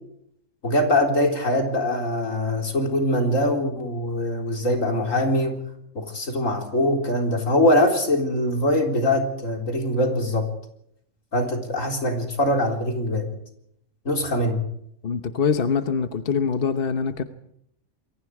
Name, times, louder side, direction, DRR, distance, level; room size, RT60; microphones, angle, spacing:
voice 1, 0.6-5.6 5.9-10.5 11.3-13.3 14.0-14.6, left 1 dB, 80° left, 3 dB, 4.4 m, -22 dB
voice 2, 15.0-17.2, left 6 dB, 50° left, 9 dB, 1.2 m, -24 dB
28.5 x 22.5 x 4.8 m, 0.75 s
omnidirectional pair, 1.3 m